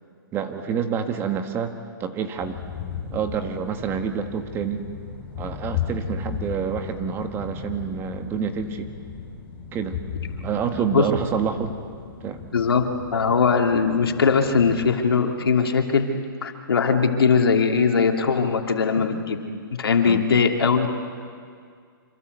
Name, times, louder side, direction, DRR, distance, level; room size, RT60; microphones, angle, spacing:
voice 1, 0.3-2.6 3.1-4.8 5.4-8.9 9.7-10.0 10.4-11.7 12.2-12.4 20.0-20.2, right 7 dB, 20° right, 7 dB, 1.5 m, -28 dB
sound 1, 2.4-14.9, left 6 dB, 15° left, 6.4 m, -35 dB
voice 2, 12.5-12.8 13.1-16.1 16.4-19.4 19.8-20.9, left 5 dB, 85° left, 3 dB, 2.9 m, -20 dB
26.5 x 25.0 x 8.2 m, 2.1 s
hypercardioid pair, 150°, 12 cm